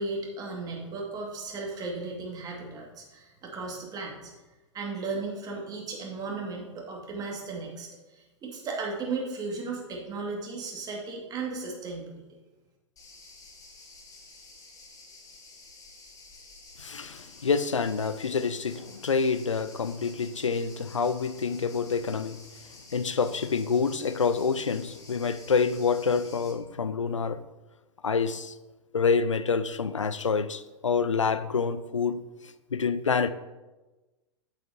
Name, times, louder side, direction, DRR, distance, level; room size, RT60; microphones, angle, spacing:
voice 1, 0.0-4.3 4.7-12.2, right 3 dB, 25° right, -1 dB, 2.0 m, -35 dB
sound 1, 13.0-26.5, left 3 dB, 20° left, 1.6 m, -51 dB
voice 2, 16.8-22.4 22.9-27.4 28.0-28.5 28.9-32.2 32.7-33.3, left 5 dB, 85° left, 14 dB, 0.4 m, -27 dB
9.1 x 7.9 x 2.8 m, 1.1 s
figure-of-eight pair, 100°, 16 cm